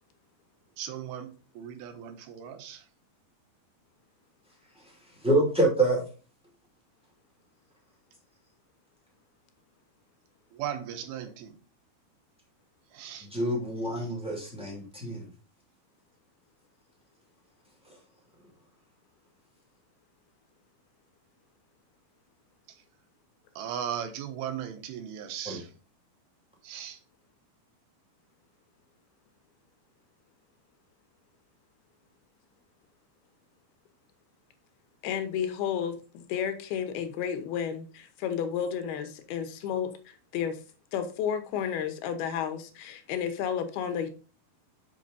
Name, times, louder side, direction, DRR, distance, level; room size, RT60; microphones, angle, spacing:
voice 1, 0.8-2.8 10.5-11.6 12.9-13.3 23.6-25.7 26.6-27.0, right 9 dB, 85° right, 8 dB, 2.9 m, -37 dB
voice 2, 5.2-6.0 13.3-15.3 25.4-25.6, right 1 dB, ahead, -2 dB, 1.3 m, -26 dB
voice 3, 35.0-40.6 40.9-44.1, left 8 dB, 85° left, 8 dB, 2.9 m, -32 dB
6.5 x 6.0 x 3.9 m, 0.35 s
omnidirectional pair, 4.3 m